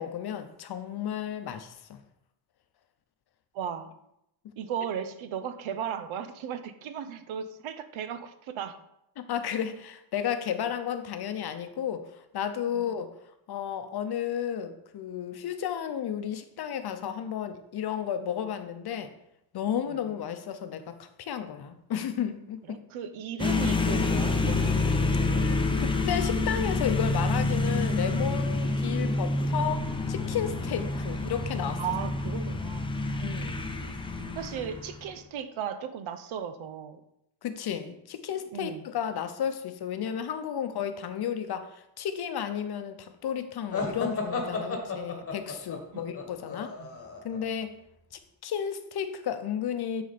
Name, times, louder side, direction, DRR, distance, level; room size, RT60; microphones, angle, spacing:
voice 1, 0.0-2.0 9.2-13.1 13.5-19.1 19.5-22.8 25.8-31.8 33.2-33.7 37.4-46.8 47.2-47.8 48.4-50.0, left 8 dB, 55° left, 9 dB, 0.7 m, -33 dB
voice 2, 3.5-3.9 4.6-8.8 12.7-12.9 19.9-20.0 22.7-24.7 31.8-32.9 34.4-37.0 38.5-38.8 46.8-46.9, right 8 dB, 85° right, 10 dB, 0.8 m, -36 dB
sound 1, 23.4-35.1, left 3 dB, 10° left, 0.5 m, -28 dB
sound 2, 43.7-47.4, left 3 dB, 30° left, 1.2 m, -33 dB
9.5 x 4.1 x 4.2 m, 0.81 s
cardioid pair, 145°, 47 cm